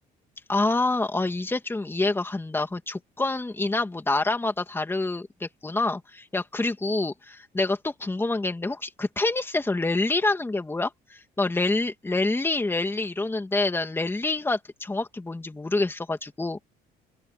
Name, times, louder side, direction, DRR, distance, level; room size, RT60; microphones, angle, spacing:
voice 1, 0.5-16.6, left 2 dB, 15° left, 2.5 m, -27 dB
open air
cardioid pair, 110°, 17 cm